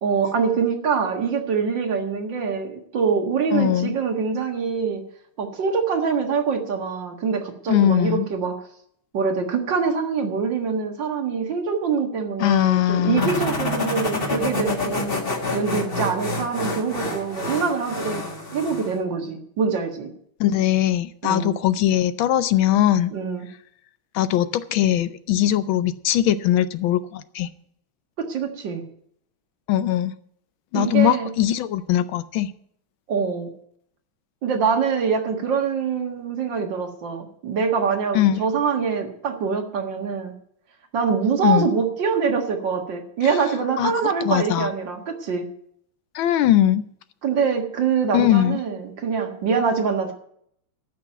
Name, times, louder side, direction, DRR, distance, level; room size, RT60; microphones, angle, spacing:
voice 1, 0.0-5.0 5.4-8.6 9.1-15.2 15.5-18.2 18.5-20.1 21.2-21.5 23.1-23.5 28.2-28.8 30.7-31.3 33.1-33.5 34.4-40.3 40.9-45.5 47.2-50.1, right 5 dB, 60° right, 4 dB, 2.3 m, -24 dB
voice 2, 3.5-4.0 7.7-8.3 12.4-13.3 20.4-23.1 24.1-27.5 29.7-30.1 30.7-32.5 38.1-38.4 41.4-41.7 43.2-43.4 43.8-43.9 44.2-44.7 46.1-46.8 48.1-48.6, left 12 dB, 75° left, 13 dB, 1.4 m, -20 dB
sound 1, 13.2-19.0, left 2 dB, 30° left, 1.9 m, -27 dB
13.5 x 6.1 x 9.1 m, 0.67 s
omnidirectional pair, 2.3 m